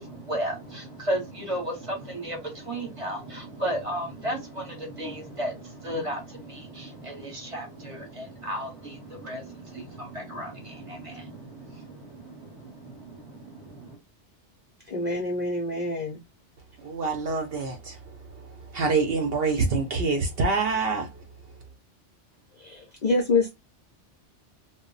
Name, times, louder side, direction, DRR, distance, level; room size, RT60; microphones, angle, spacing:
voice 1, 0.0-14.0, right 1 dB, 30° right, 0.8 m, -34 dB
voice 2, 14.9-16.2 22.6-23.5, left 3 dB, 55° left, 0.5 m, -26 dB
voice 3, 16.8-18.0 18.7-21.1, right 4 dB, 60° right, 0.7 m, -25 dB
2.1 x 2.0 x 3.7 m
omnidirectional pair, 1.2 m